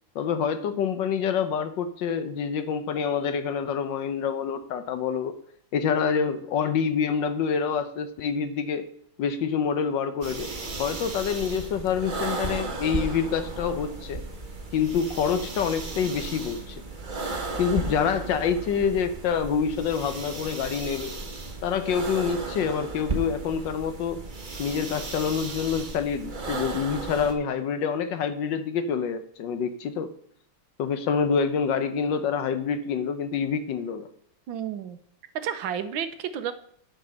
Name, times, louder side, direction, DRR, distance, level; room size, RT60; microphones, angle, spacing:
voice 1, 0.1-5.3 5.7-8.8 9.2-10.5 10.8-14.2 14.7-16.8 17.6-21.2 21.6-24.2 24.6-30.1 30.8-34.1, left 6 dB, 70° left, 10 dB, 1.5 m, -27 dB
sound 1, 10.2-27.3, right 3 dB, 30° right, 1.2 m, -35 dB
voice 2, 34.5-35.0 35.4-36.5, right 8 dB, 80° right, 9 dB, 1.6 m, -31 dB
10.5 x 5.3 x 6.4 m, 0.65 s
omnidirectional pair, 2.1 m